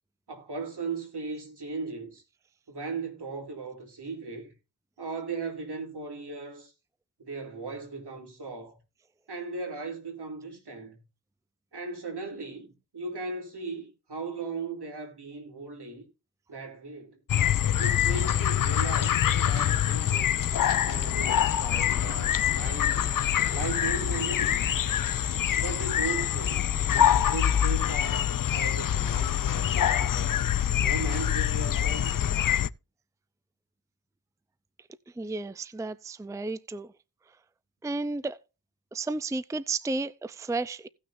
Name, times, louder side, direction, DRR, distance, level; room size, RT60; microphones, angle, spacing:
voice 1, 0.3-2.2 2.7-4.5 5.0-6.7 7.2-8.8 9.3-11.0 11.7-16.0 16.5-17.2 17.8-20.4 20.9-23.1 23.5-24.7 25.5-26.6 27.2-30.5 30.8-32.1, right 3 dB, 70° right, 3.3 m, -37 dB
sound 1, 17.3-32.7, left 10 dB, 50° left, 0.5 m, -25 dB
voice 2, 35.2-36.9 37.8-38.4 38.9-40.9, right 3 dB, 10° right, 0.5 m, -32 dB
17.5 x 6.2 x 2.6 m
cardioid pair, 60°, 42 cm